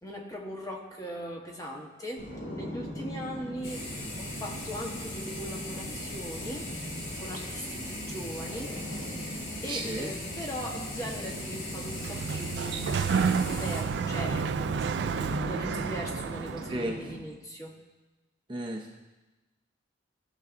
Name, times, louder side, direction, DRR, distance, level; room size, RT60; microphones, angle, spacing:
voice 1, 0.0-6.7 7.2-9.2 9.6-17.7, equal, 20° left, -1 dB, 1.1 m, -40 dB
sound 1, 2.2-17.2, equal, 60° left, 2.8 m, -41 dB
sound 2, 3.6-13.8, left 1 dB, 75° left, 2.9 m, -39 dB
voice 2, 9.7-10.1 16.7-17.0 18.5-18.9, right 1 dB, 25° right, 0 dB, 0.7 m, -33 dB
Sliding door, 11.7-16.9, right 6 dB, 60° right, 0.3 m, -30 dB
16.5 x 6.2 x 2.6 m, 1.1 s
head